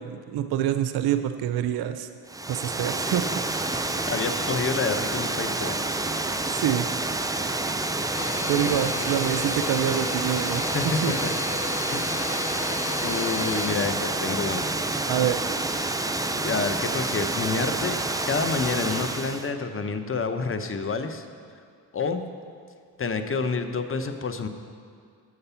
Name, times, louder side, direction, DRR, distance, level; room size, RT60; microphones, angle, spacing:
voice 1, 0.0-2.1 2.5-3.4 3.7-3.9 6.5-6.9 8.5-11.1 11.9-12.0 15.1-15.4, right 10 dB, 55° right, 9 dB, 0.5 m, -26 dB
Water, 2.3-19.5, right 2 dB, 10° right, 0.5 m, -28 dB
voice 2, 4.0-5.8 10.7-11.3 11.9-12.1 13.0-14.7 16.3-18.0 18.3-21.3 21.9-22.3 23.0-24.5, left 4 dB, 30° left, 8 dB, 0.8 m, -28 dB
Domestic sounds home sounds, 8.1-13.7, left 4 dB, 85° left, 0.8 m, -34 dB
8.0 x 6.7 x 5.7 m, 2.2 s
hypercardioid pair, 50°, 46 cm